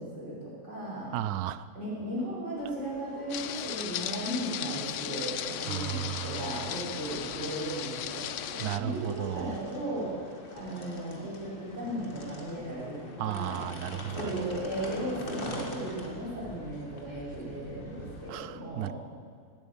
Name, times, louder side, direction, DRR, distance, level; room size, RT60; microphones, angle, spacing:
voice 1, 0.0-1.1 1.8-10.1 10.5-13.6 14.1-18.9, right 1 dB, 45° right, -7 dB, 5.6 m, -36 dB
voice 2, 1.1-1.7 5.6-6.8 8.6-9.6 13.2-14.6 18.3-18.9, right 13 dB, 80° right, 16 dB, 1.1 m, -35 dB
sound 1, 2.6-18.3, left 1 dB, 35° left, 1.9 m, -45 dB
sound 2, 3.3-8.8, left 11 dB, 65° left, 0.8 m, -36 dB
17.5 x 9.2 x 8.6 m, 2.1 s
omnidirectional pair, 1.6 m